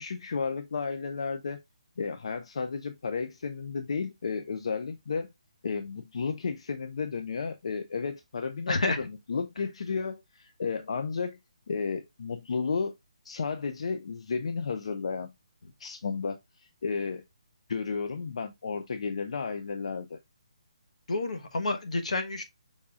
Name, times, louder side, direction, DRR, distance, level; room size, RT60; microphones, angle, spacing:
voice 1, 0.0-1.6 2.0-5.3 5.6-11.4 11.7-12.9 13.2-15.3 15.8-17.2 17.7-20.2, left 5 dB, 60° left, 0.5 m, -33 dB
voice 2, 8.7-9.1 21.1-22.4, left 2 dB, 80° left, 1.1 m, -29 dB
5.5 x 3.6 x 2.4 m
hypercardioid pair, 170°, 4 cm